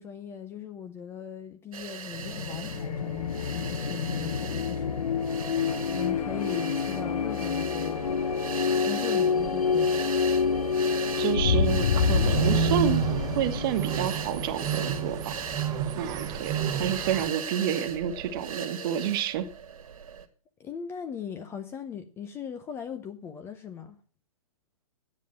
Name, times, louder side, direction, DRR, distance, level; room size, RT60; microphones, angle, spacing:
voice 1, 0.0-4.9 5.9-8.3 8.9-10.2 16.8-17.0 20.6-24.0, left 7 dB, 15° left, 0.6 m, -39 dB
sound 1, 1.7-20.3, right 7 dB, 70° right, 1.9 m, -39 dB
sound 2, 2.1-15.6, left 6 dB, 80° left, 0.9 m, -28 dB
voice 2, 11.2-13.0 13.3-15.3 15.9-16.5 16.8-19.5, right 9 dB, 40° right, 1.3 m, -29 dB
sound 3, 12.0-17.3, right 10 dB, 20° right, 1.0 m, -30 dB
9.9 x 7.6 x 7.5 m
hypercardioid pair, 140°, 19 cm